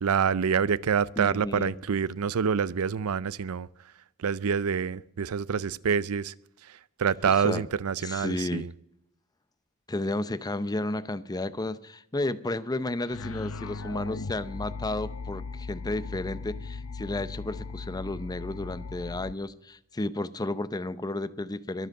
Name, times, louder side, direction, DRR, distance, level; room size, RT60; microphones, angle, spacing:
voice 1, 0.0-3.7 4.2-6.3 7.0-8.7, right 6 dB, 80° right, 0.5 m, -26 dB
voice 2, 1.2-1.8 7.2-7.6 8.0-8.7 9.9-21.9, left 2 dB, 20° left, 0.6 m, -32 dB
sound 1, 13.0-19.3, left 4 dB, 70° left, 0.7 m, -38 dB
22.5 x 7.7 x 6.6 m
head